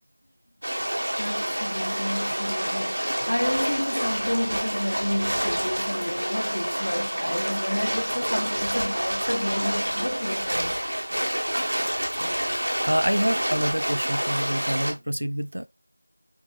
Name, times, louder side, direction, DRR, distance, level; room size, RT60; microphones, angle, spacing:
sound 1, 0.6-14.9, equal, 45° right, 1.6 m, -28 dB
voice 1, 1.2-10.8, equal, 60° left, 0.6 m, -30 dB
voice 2, 12.1-12.5 12.9-15.7, equal, 70° right, 0.3 m, -27 dB
4.4 x 4.4 x 2.4 m
figure-of-eight pair, 180°, 0 cm